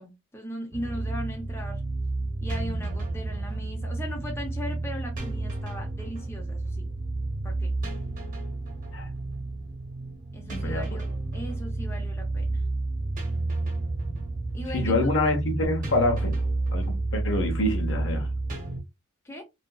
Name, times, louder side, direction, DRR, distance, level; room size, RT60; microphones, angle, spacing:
voice 1, 0.0-1.8 2.4-6.9 7.4-7.8 10.3-12.6 14.5-15.1 19.2-19.4, equal, 10° left, 0.5 m, -38 dB
sound 1, 0.7-18.8, right 2 dB, 40° right, 1.0 m, -30 dB
voice 2, 10.5-10.8 11.3-11.4 14.7-16.4 16.7-18.3, left 2 dB, 60° left, 0.8 m, -26 dB
2.8 x 2.4 x 2.2 m
head